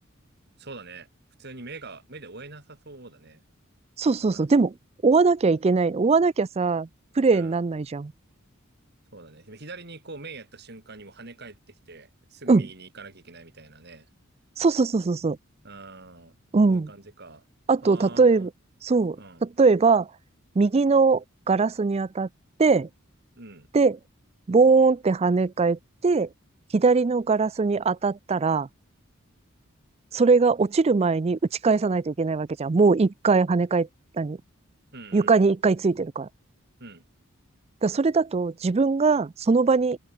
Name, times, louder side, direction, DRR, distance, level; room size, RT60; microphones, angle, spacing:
voice 1, 0.6-1.1 1.4-3.4 4.2-4.6 7.3-7.6 9.1-14.1 15.6-16.4 16.7-17.4 17.8-18.5 19.2-19.4 23.4-23.7 34.9-35.4 36.8-37.0, right 3 dB, 50° right, 3.9 m, -44 dB
voice 2, 4.0-4.7 5.0-6.9 7.2-8.1 12.5-12.7 14.6-15.4 16.5-16.9 17.7-18.5 18.8-19.2 19.4-20.1 20.6-22.3 22.6-22.9 23.7-24.0 24.5-26.3 26.7-28.7 30.1-33.9 34.2-34.4 35.1-36.3 37.8-40.0, right 4 dB, 30° right, 0.4 m, -21 dB
head